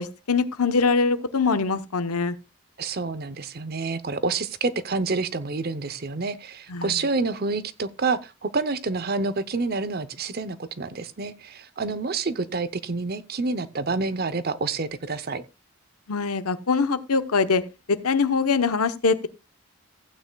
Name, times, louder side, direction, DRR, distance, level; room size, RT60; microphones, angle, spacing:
voice 1, 0.0-2.3 6.7-7.0 16.1-17.6 17.9-19.3, left 4 dB, 90° left, 0.9 m, -23 dB
voice 2, 2.8-15.4, right 3 dB, 45° right, 0.6 m, -28 dB
15.5 x 8.9 x 2.3 m
head